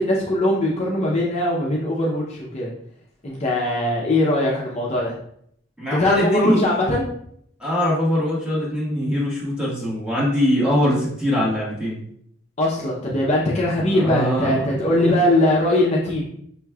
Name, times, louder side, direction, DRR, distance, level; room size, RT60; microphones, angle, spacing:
voice 1, 0.0-2.7 3.2-5.1 6.0-7.0 12.6-16.3, left 1 dB, 35° left, -4 dB, 0.6 m, -21 dB
voice 2, 5.8-6.8 7.6-12.0 13.9-15.0, equal, 5° right, -7 dB, 1.3 m, -22 dB
5.6 x 3.0 x 2.3 m, 0.68 s
head